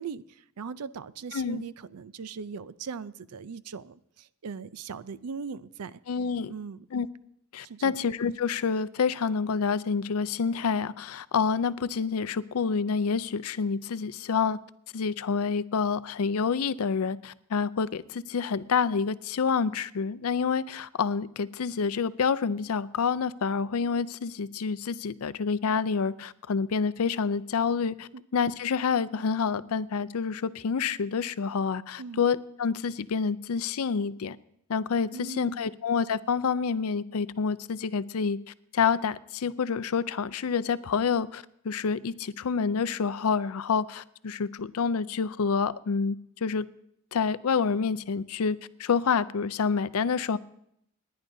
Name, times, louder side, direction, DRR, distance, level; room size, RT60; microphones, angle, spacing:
voice 1, 0.0-6.0 6.5-6.8 7.6-8.0 28.1-28.2 32.0-32.2 35.1-35.7, right 5 dB, 85° right, 0.5 m, -39 dB
voice 2, 1.3-1.6 6.1-6.5 6.9-7.1 7.5-14.6 14.9-34.4 34.7-38.4 38.7-46.2 46.4-46.7 47.1-50.4, left 5 dB, 70° left, 0.5 m, -28 dB
29.5 x 10.5 x 2.7 m
head